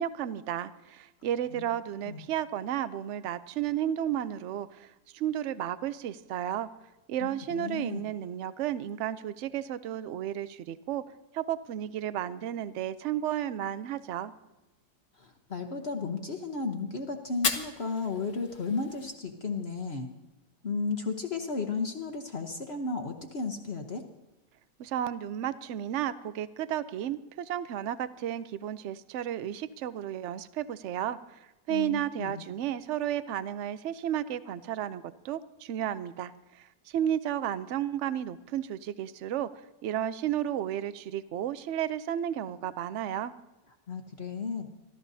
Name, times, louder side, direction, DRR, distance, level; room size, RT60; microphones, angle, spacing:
voice 1, 0.0-4.9 5.1-6.7 7.1-11.0 11.3-14.3 24.8-31.2 31.7-39.5 39.8-43.3, right 11 dB, 65° right, 14 dB, 0.7 m, -33 dB
voice 2, 7.2-8.1 15.2-20.1 20.6-24.0 31.7-32.4 43.9-44.7, left 4 dB, 45° left, 4 dB, 1.1 m, -34 dB
Fire, 17.3-19.3, left 5 dB, 75° left, 1.7 m, -35 dB
26.5 x 13.0 x 2.7 m, 1.0 s
omnidirectional pair, 1.8 m